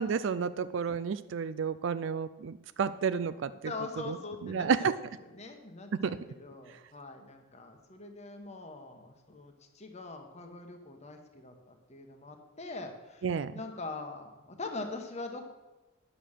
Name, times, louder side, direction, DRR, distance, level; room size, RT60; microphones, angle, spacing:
voice 1, 0.0-3.5 4.1-4.2 4.4-4.9 5.9-6.2 13.2-13.5, right 6 dB, 65° right, 13 dB, 0.4 m, -31 dB
voice 2, 3.6-4.9 5.2-13.3 13.5-15.5, left 3 dB, 30° left, 5 dB, 1.1 m, -43 dB
10.0 x 7.5 x 6.5 m, 1.1 s
head